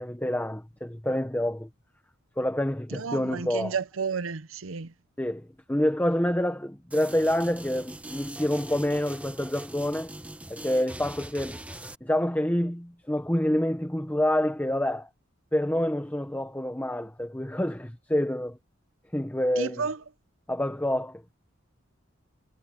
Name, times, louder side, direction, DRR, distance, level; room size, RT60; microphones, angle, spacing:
voice 1, 0.0-1.7 2.4-3.8 5.2-10.1 10.5-11.6 12.0-15.1 15.5-18.6 19.1-19.9 20.5-21.2, left 1 dB, 10° left, 1.3 m, -27 dB
voice 2, 2.9-4.9 19.6-20.0, right 5 dB, 75° right, 0.8 m, -32 dB
sound 1, 6.9-12.0, right 1 dB, 5° right, 1.5 m, -42 dB
head